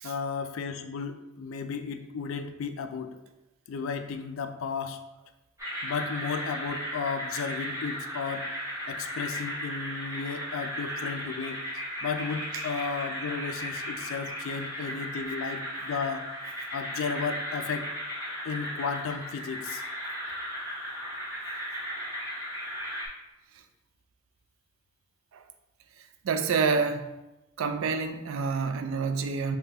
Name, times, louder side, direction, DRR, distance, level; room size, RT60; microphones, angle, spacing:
voice 1, 0.0-3.1 3.7-5.0 5.8-8.5 8.9-11.6 12.0-16.3 16.7-17.9 18.4-19.8, left 5 dB, 80° left, 0.3 m, -34 dB
sound 1, 5.6-23.1, equal, 15° right, 0.7 m, -36 dB
voice 2, 26.2-27.1 27.6-29.6, right 5 dB, 85° right, 0.4 m, -28 dB
5.3 x 2.2 x 2.8 m
head